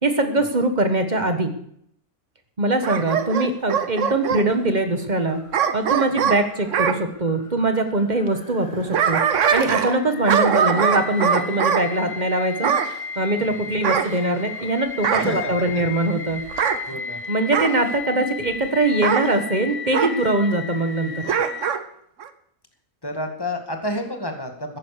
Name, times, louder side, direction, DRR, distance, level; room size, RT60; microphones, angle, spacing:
voice 1, 0.0-1.5 2.6-5.4 5.7-9.2 9.5-12.7 13.2-16.4 17.3-21.3, right 2 dB, 30° right, 7 dB, 1.4 m, -22 dB
Bark / Growling, 2.8-4.5 5.5-7.0 8.6-10.0 10.3-11.8 12.6-12.9 13.8-14.6 15.0-15.4 16.5-16.8 17.5-17.8 19.0-19.3 19.9-20.2 21.2-21.8 22.2-22.3, right 7 dB, 60° right, 1.2 m, -22 dB
sound 1, 5.3-21.7, left 5 dB, 40° left, 0.5 m, -35 dB
voice 2, 13.4-13.7 15.1-15.5 16.9-17.2 23.0-24.8, left 1 dB, 15° left, 4 dB, 2.1 m, -29 dB
14.5 x 10.5 x 6.7 m, 0.71 s
omnidirectional pair, 1.5 m